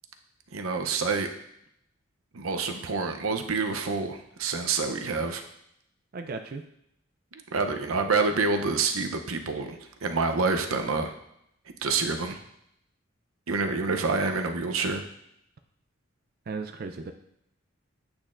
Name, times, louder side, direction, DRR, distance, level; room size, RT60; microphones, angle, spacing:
voice 1, 0.5-1.3 2.3-5.4 7.3-11.1 11.8-12.4 13.5-15.0, right 4 dB, 85° right, 6 dB, 0.7 m, -27 dB
voice 2, 6.1-6.6 16.5-17.1, right 4 dB, 45° right, 6 dB, 0.4 m, -35 dB
8.7 x 6.1 x 2.5 m, 0.76 s
head